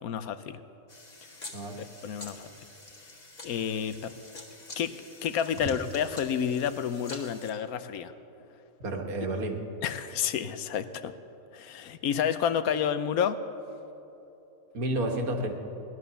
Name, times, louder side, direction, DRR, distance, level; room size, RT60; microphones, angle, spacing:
voice 1, 0.0-0.6 2.0-2.5 3.4-4.1 4.8-8.1 9.8-11.1 11.5-13.4, left 8 dB, 80° left, 12 dB, 1.2 m, -30 dB
sound 1, 0.9-7.5, left 2 dB, 30° left, 1.7 m, -47 dB
voice 2, 8.8-9.6 14.7-15.5, right 1 dB, 80° right, 3 dB, 1.9 m, -30 dB
17.5 x 11.0 x 6.8 m, 3.0 s
omnidirectional pair, 1.5 m